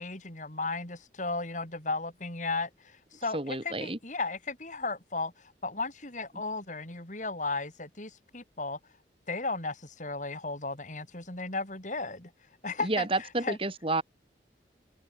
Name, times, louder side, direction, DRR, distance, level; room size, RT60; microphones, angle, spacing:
voice 1, 0.0-8.8 9.3-12.3 12.6-13.1 13.4-13.6, left 3 dB, 45° left, 6.1 m, -35 dB
voice 2, 3.3-4.0 12.8-14.0, right 2 dB, 30° right, 3.6 m, -30 dB
open air
head